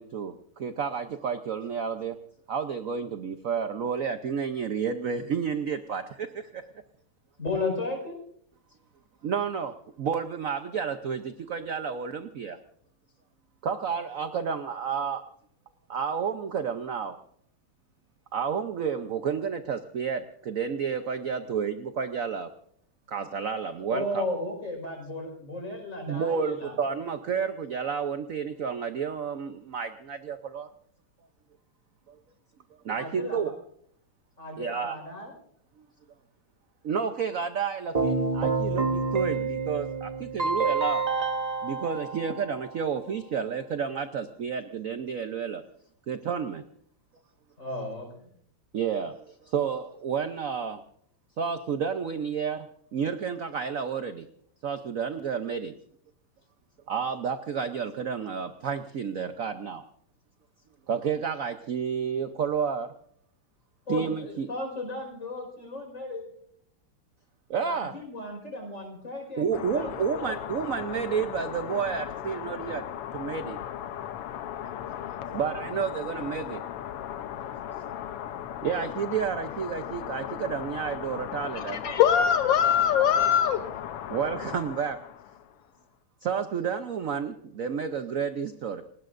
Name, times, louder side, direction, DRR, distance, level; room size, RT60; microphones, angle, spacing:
voice 1, 0.0-2.2 2.5-6.6 9.2-12.6 13.6-15.2 15.9-17.2 18.3-22.5 23.1-24.3 26.1-30.7 32.1-32.2 32.8-33.5 34.6-35.0 35.8-35.9 36.8-41.0 41.6-45.6 46.1-46.6 48.7-50.8 51.4-54.3 54.6-55.7 56.9-59.8 60.9-62.9 63.9-64.5 67.5-67.9 69.4-72.8 73.1-73.6 75.3-76.6 78.6-82.0 84.1-85.0 86.2-88.8, right 6 dB, 70° right, 8 dB, 0.7 m, -31 dB
voice 2, 7.4-8.2 23.9-26.8 32.9-33.4 34.4-35.3 47.6-48.3 63.9-66.2 67.6-70.4 75.2-75.8, left 2 dB, 35° left, 2 dB, 5.3 m, -35 dB
Keyboard (musical), 37.9-42.9, right 4 dB, 25° right, 0.9 m, -28 dB
sound 1, 69.5-85.6, left 10 dB, 90° left, 1.8 m, -37 dB
voice 3, 81.5-83.6, left 9 dB, 65° left, 9 dB, 1.4 m, -22 dB
29.5 x 19.0 x 2.6 m, 0.67 s
omnidirectional pair, 2.4 m